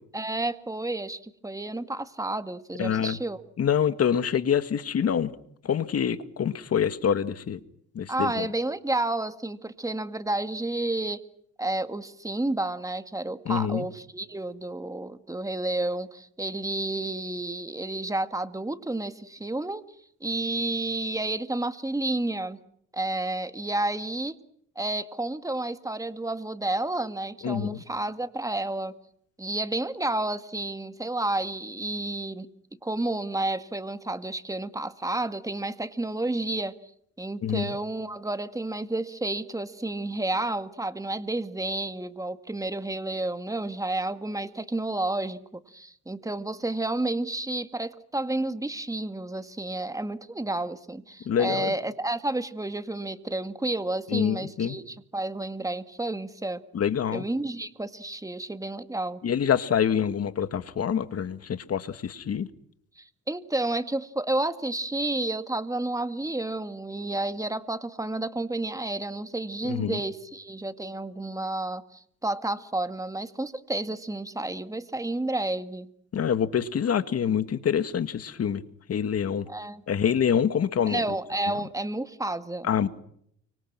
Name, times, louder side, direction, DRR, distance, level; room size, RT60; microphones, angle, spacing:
voice 1, 0.1-3.4 8.1-11.2 11.6-19.9 20.2-22.6 22.9-24.4 24.8-29.0 29.4-32.5 32.8-36.7 37.2-56.6 57.1-59.2 63.0-75.9 79.5-79.8 80.9-82.7, right 2 dB, 10° right, 2.0 m, -31 dB
voice 2, 2.8-3.2 3.6-5.3 5.6-7.6 7.9-8.5 13.5-13.9 27.4-27.8 37.4-37.7 51.3-51.7 54.1-54.8 56.7-57.2 59.2-62.5 69.6-70.0 76.1-78.6 78.9-79.5 79.9-81.0 82.6-82.9, left 8 dB, 55° left, 2.0 m, -26 dB
30.0 x 25.5 x 6.2 m
cardioid pair, 90°, 30 cm